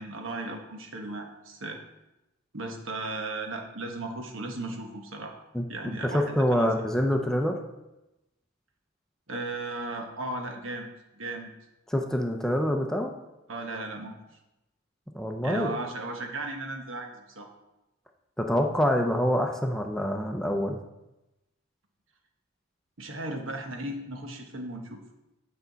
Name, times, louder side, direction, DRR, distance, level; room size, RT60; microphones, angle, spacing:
voice 1, 0.0-1.8 2.5-5.3 5.7-6.7 9.3-11.5 13.5-14.1 15.4-17.5 23.0-25.0, right 2 dB, 75° right, 3 dB, 1.2 m, -36 dB
voice 2, 6.0-7.6 11.9-13.1 15.1-15.7 18.4-20.8, equal, 5° left, 3 dB, 0.6 m, -26 dB
8.6 x 5.5 x 4.0 m, 0.96 s
head